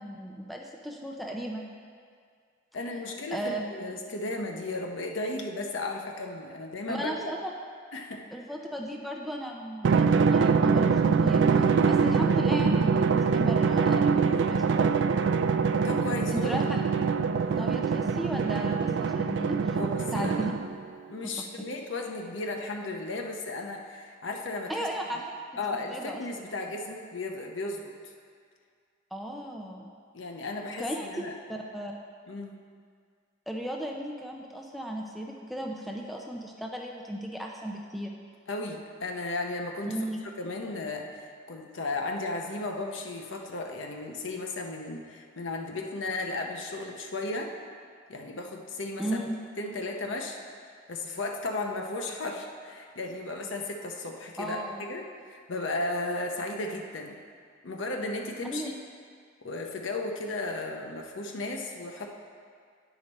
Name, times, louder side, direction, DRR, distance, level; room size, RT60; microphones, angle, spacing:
voice 1, 0.0-1.7 3.3-3.6 6.9-7.5 8.3-15.0 16.3-16.8 17.5-19.8 20.1-20.5 24.7-25.2 25.7-26.2 29.1-29.9 30.8-31.2 31.5-31.9 33.5-38.1 39.8-40.3 49.0-49.4 54.4-54.8 58.5-58.7, right 1 dB, ahead, -1 dB, 0.5 m, -35 dB
voice 2, 2.7-7.3 7.9-8.2 15.8-16.5 16.8-17.2 19.7-20.4 21.1-24.9 25.6-27.9 30.1-31.3 32.3-32.6 38.5-40.0 40.4-47.5 48.1-49.0 49.6-50.4 50.9-54.6 54.9-57.2 57.6-58.7 59.4-62.1, left 2 dB, 75° left, 2 dB, 0.8 m, -35 dB
Drum, 9.8-20.8, right 5 dB, 65° right, 0.3 m, -24 dB
9.9 x 5.1 x 4.1 m, 2.1 s
head